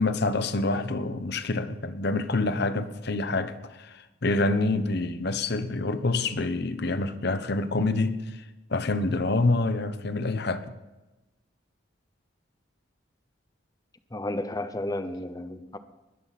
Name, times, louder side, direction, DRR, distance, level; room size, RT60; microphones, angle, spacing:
voice 1, 0.0-8.4 8.7-10.7, left 2 dB, 55° left, 1.0 m, -27 dB
voice 2, 14.1-15.8, left 1 dB, 20° left, 0.8 m, -32 dB
20.5 x 11.5 x 4.2 m
head